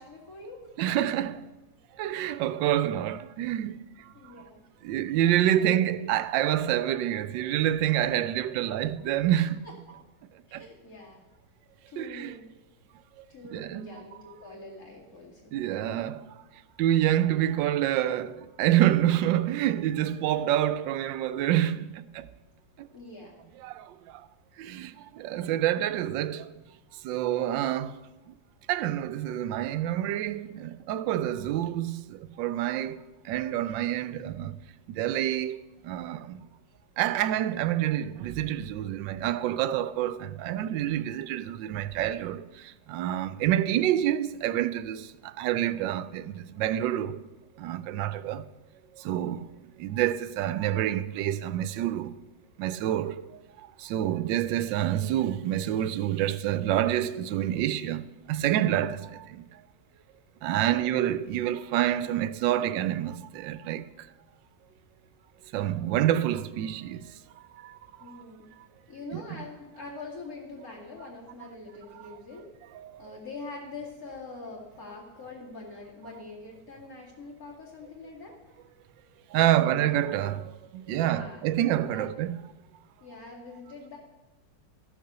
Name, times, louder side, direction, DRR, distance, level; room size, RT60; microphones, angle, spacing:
voice 1, 0.0-0.7 4.1-4.6 5.1-5.7 5.9-6.1 9.6-10.0 10.5-11.2 11.9-12.5 13.3-15.5 22.9-23.3 49.2-49.3 60.6-60.9 68.0-68.5 68.9-72.5 73.0-78.4 79.4-79.8 80.9-81.4 81.9-82.1 83.0-84.0, left 3 dB, 50° left, 2.7 m, -44 dB
voice 2, 0.8-1.4 2.0-4.3 4.8-9.7 10.5-10.6 12.0-12.3 13.2-13.3 13.5-14.0 15.5-16.3 16.8-22.2 23.6-24.2 24.6-26.5 27.0-28.0 28.7-33.0 33.2-34.5 34.9-36.4 37.0-47.2 47.6-48.4 49.0-49.5 49.8-52.2 52.6-58.0 58.3-59.4 60.4-64.1 65.5-67.1 67.5-67.8 69.1-69.4 72.0-72.1 72.7-73.2 79.3-82.4, right 12 dB, 85° right, 1.3 m, -28 dB
13.5 x 6.7 x 6.7 m
omnidirectional pair, 2.0 m